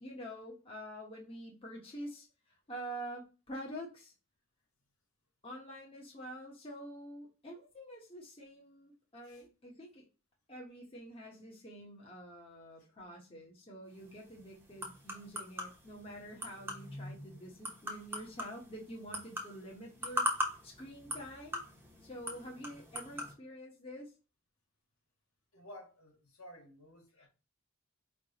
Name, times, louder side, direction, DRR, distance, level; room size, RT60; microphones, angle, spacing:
voice 1, 0.0-4.1 5.4-10.0 10.5-21.6 22.0-24.1 27.2-27.3, equal, 25° left, 1.2 m, -47 dB
sound 1, 13.9-23.3, equal, 10° right, 1.0 m, -41 dB
voice 2, 25.5-27.3, left 1 dB, 80° left, 1.7 m, -53 dB
5.1 x 3.4 x 2.9 m
head